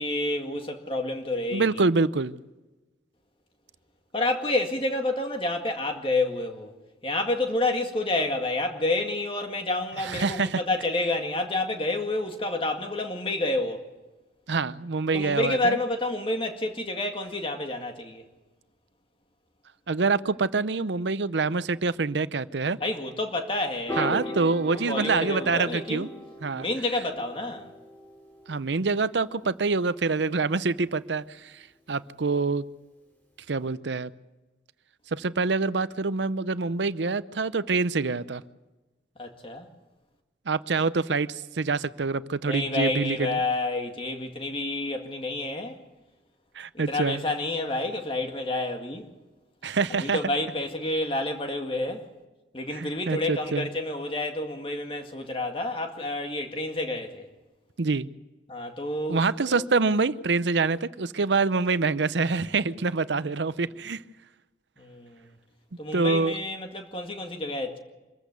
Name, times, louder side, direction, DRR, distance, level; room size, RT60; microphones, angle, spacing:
voice 1, 0.0-1.8 4.1-6.7 7.0-13.8 15.1-18.2 22.8-26.1 26.5-27.7 39.2-39.7 42.4-45.8 46.7-49.1 49.9-52.1 52.5-57.3 58.5-59.6 64.8-65.3 65.8-67.8, left 2 dB, 30° left, 2.0 m, -29 dB
voice 2, 1.5-2.4 10.0-10.6 14.5-15.8 19.9-22.8 24.0-26.1 26.4-26.7 28.5-31.6 31.9-32.6 33.5-34.1 35.1-38.4 40.5-43.4 46.6-47.2 49.6-50.2 52.7-53.7 57.8-58.1 59.1-64.0 65.9-66.4, right 4 dB, 85° right, 0.7 m, -26 dB
Piano, 23.9-30.3, left 1 dB, 10° left, 4.5 m, -39 dB
25.0 x 14.5 x 8.1 m
head